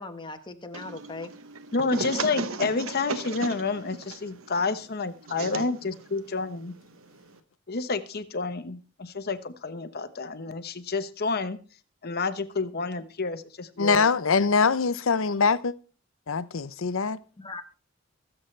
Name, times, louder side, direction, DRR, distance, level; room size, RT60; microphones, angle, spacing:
voice 1, 0.0-1.3 17.4-17.6, left 3 dB, 25° left, 1.3 m, -39 dB
sound 1, 0.7-7.4, right 3 dB, 85° right, 1.0 m, -37 dB
voice 2, 1.7-6.7 7.7-11.6 12.0-14.0, left 4 dB, 50° left, 1.0 m, -29 dB
voice 3, 13.8-15.7 16.3-17.2, left 5 dB, 75° left, 0.7 m, -23 dB
24.0 x 8.0 x 3.3 m
head